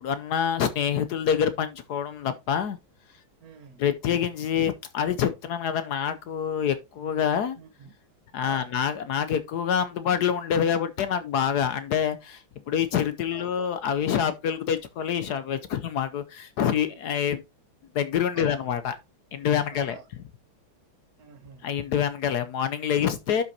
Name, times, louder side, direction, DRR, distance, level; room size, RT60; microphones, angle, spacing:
voice 1, 0.0-2.8 3.8-7.6 8.3-17.4 17.9-19.0 19.3-20.2 21.6-23.4, left 8 dB, 65° left, 1.1 m, -26 dB
voice 2, 3.4-3.8 7.6-7.9 8.4-8.7 13.3-13.5 18.3-18.6 19.7-20.0 21.2-21.7, right 5 dB, 55° right, 1.3 m, -47 dB
11.5 x 5.5 x 2.7 m
omnidirectional pair, 2.2 m